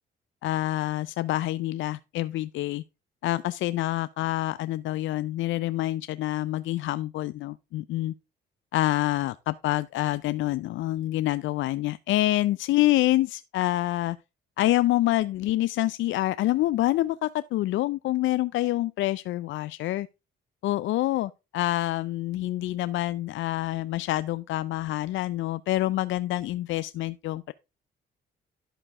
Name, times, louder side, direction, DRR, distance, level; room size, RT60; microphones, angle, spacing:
voice 1, 0.4-2.8 3.2-8.1 8.7-14.2 14.6-20.1 20.6-27.5, left 15 dB, 75° left, 0.4 m, -27 dB
11.0 x 6.7 x 3.5 m
cardioid pair, 90°, 20 cm